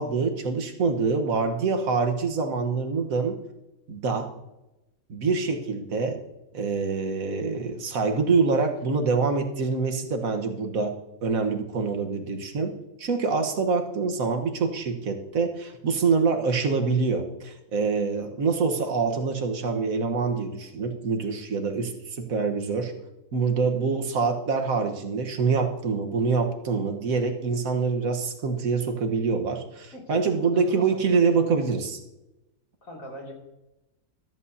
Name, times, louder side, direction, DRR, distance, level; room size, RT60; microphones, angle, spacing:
voice 1, 0.0-3.4 3.9-4.3 5.1-6.2 6.5-10.9 11.2-22.9 23.3-32.0, right 4 dB, 85° right, 5 dB, 1.7 m, -25 dB
voice 2, 29.9-31.0 32.8-33.3, equal, 75° left, -1 dB, 3.1 m, -39 dB
14.0 x 13.5 x 2.8 m, 0.97 s
omnidirectional pair, 1.4 m